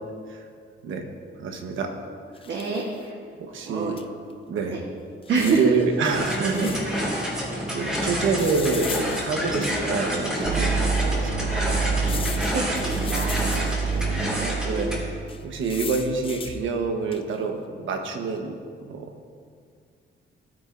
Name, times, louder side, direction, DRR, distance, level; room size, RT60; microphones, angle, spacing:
voice 1, 1.4-1.9 3.4-4.0 4.5-4.8 5.4-6.7 7.7-10.7 11.0-11.9 13.5-15.1 15.4-19.3, right 4 dB, 80° right, 4 dB, 1.2 m, -27 dB
sound 1, 2.3-3.0 4.0-4.1 4.3-4.4 5.2-7.0 8.4-10.0 10.6-10.7 12.0-14.0 15.3-16.6 17.1-17.4, left 6 dB, 30° left, 0.4 m, -38 dB
voice 2, 2.4-3.1 3.6-3.9 4.7-4.8 5.3-5.6 6.1-7.0 12.4-13.3 14.7-15.0, right 4 dB, 60° right, -2 dB, 1.2 m, -27 dB
sound 2, 6.1-15.0, equal, 5° right, 2.1 m, -28 dB
sound 3, 10.4-16.4, right 5 dB, 45° right, 0.4 m, -28 dB
16.0 x 9.1 x 2.6 m, 2.2 s
wide cardioid pair, 175°, 20 cm